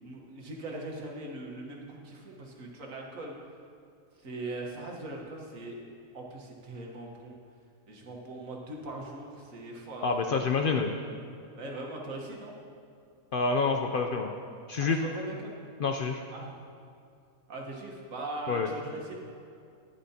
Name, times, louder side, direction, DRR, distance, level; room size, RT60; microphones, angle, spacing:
voice 1, 0.0-3.3 4.2-5.8 6.1-7.4 7.9-10.1 11.6-12.5 14.8-15.6 16.3-16.5 17.5-19.1, right 2 dB, 75° right, -1 dB, 1.7 m, -40 dB
voice 2, 10.0-10.9 13.3-14.3 14.7-15.0 15.8-16.2 18.5-18.7, left 4 dB, 65° left, 4 dB, 0.5 m, -27 dB
13.0 x 10.0 x 2.8 m, 2.4 s
omnidirectional pair, 1.4 m